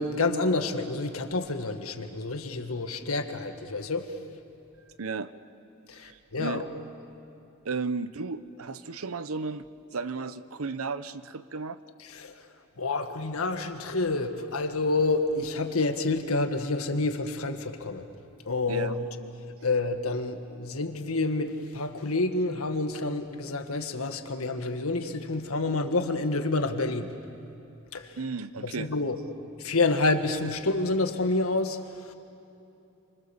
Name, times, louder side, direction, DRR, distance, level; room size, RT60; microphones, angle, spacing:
voice 1, 0.0-4.1 5.9-6.7 12.1-12.3 12.8-18.1 18.4-19.1 19.6-27.1 27.9-28.2 28.6-29.2 29.6-32.1, left 3 dB, 90° left, 7 dB, 1.7 m, -28 dB
voice 2, 5.0-5.3 6.0-6.6 7.6-9.6 9.9-11.8 18.7-18.9 19.4-19.5 28.2-28.9, right 4 dB, 85° right, 13 dB, 0.9 m, -34 dB
28.0 x 25.5 x 7.2 m, 2.9 s
head